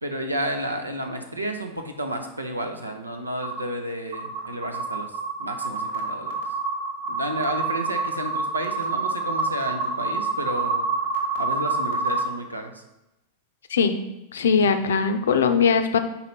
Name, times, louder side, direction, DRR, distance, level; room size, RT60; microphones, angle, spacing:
voice 1, 0.0-6.4 7.1-10.8 11.4-12.8 14.5-14.7, right 1 dB, 85° right, 5 dB, 0.8 m, -31 dB
sound 1, 3.4-3.6 4.1-12.3, right 4 dB, 65° right, 1.4 m, -27 dB
voice 2, 13.7-14.0 14.3-16.0, left 6 dB, 65° left, 8 dB, 0.5 m, -20 dB
5.1 x 4.1 x 5.8 m, 0.93 s
figure-of-eight pair, 90°, 0 cm